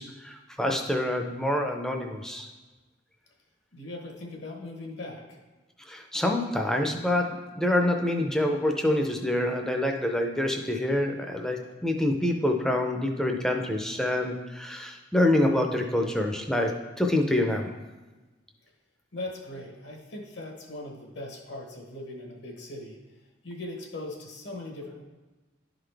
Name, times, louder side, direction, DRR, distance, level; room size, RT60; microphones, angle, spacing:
voice 1, 0.0-2.5 5.9-17.7, left 1 dB, 5° left, 2 dB, 0.5 m, -26 dB
voice 2, 3.7-5.4 19.1-25.0, left 2 dB, 65° left, 0 dB, 1.2 m, -40 dB
11.0 x 3.9 x 3.4 m, 1.2 s
head